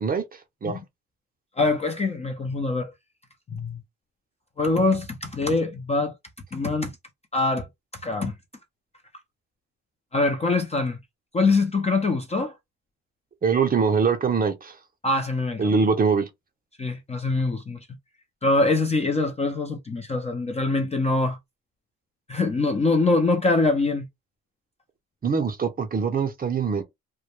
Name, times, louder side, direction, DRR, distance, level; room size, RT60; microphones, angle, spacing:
voice 1, 0.0-0.8 13.4-14.8 15.6-16.3 25.2-26.8, right 5 dB, 30° right, 0.6 m, -23 dB
voice 2, 1.6-2.9 3.5-3.8 4.6-6.1 6.5-6.9 7.3-7.7 8.0-8.3 10.1-11.0 11.3-12.5 15.0-15.8 16.8-17.8 18.4-21.4 22.3-24.1, left 3 dB, 20° left, 0.4 m, -23 dB
2.1 x 2.1 x 2.9 m
cardioid pair, 90°, 30 cm